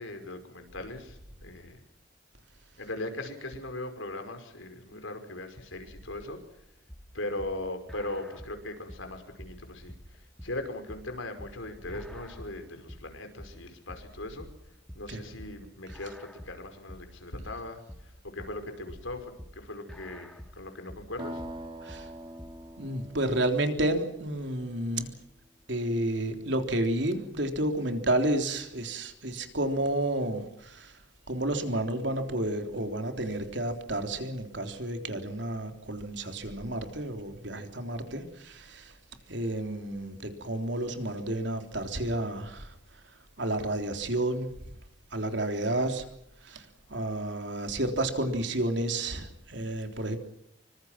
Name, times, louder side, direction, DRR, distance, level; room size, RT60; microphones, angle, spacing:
voice 1, 0.0-1.8 2.8-6.4 7.1-14.5 14.9-21.4, left 2 dB, 85° left, 5.5 m, -39 dB
sound 1, 6.9-22.7, equal, 5° left, 2.3 m, -48 dB
sound 2, 21.2-25.0, equal, 25° right, 3.3 m, -44 dB
voice 2, 21.8-22.1 22.8-25.2 25.7-31.0 31.3-39.0 39.3-42.8 43.4-44.5 45.1-46.1 46.4-50.2, right 1 dB, 65° right, 3.6 m, -31 dB
26.5 x 25.0 x 6.0 m
head